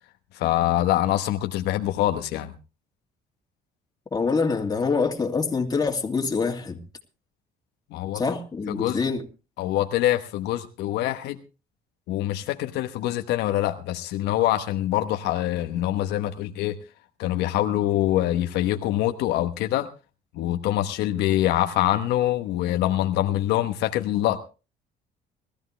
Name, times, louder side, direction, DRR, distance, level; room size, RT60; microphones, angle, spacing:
voice 1, 0.3-2.5 7.9-8.2 8.7-9.0 9.6-11.4 12.1-16.8 17.2-19.9 20.3-24.4, left 13 dB, 85° left, 1.2 m, -24 dB
voice 2, 4.1-6.8 8.1-9.2, left 4 dB, 25° left, 2.6 m, -25 dB
20.0 x 14.0 x 3.3 m
cardioid pair, 110°, 17 cm